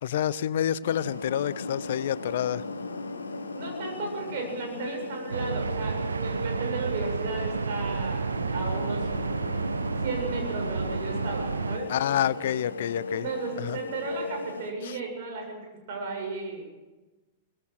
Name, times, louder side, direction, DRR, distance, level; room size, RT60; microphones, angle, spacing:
voice 1, 0.0-2.6 11.9-13.3 13.6-13.8 14.8-14.9, left 10 dB, 60° left, 19 dB, 0.6 m, -28 dB
sound 1, 0.8-14.7, left 3 dB, 75° left, 1.7 m, -37 dB
voice 2, 3.5-9.1 10.0-11.9 13.1-16.7, right 3 dB, 50° right, 2 dB, 7.7 m, -35 dB
sound 2, 5.3-11.8, right 5 dB, 75° right, 0.8 m, -31 dB
23.5 x 20.0 x 6.5 m, 1.2 s
figure-of-eight pair, 100°, 0 cm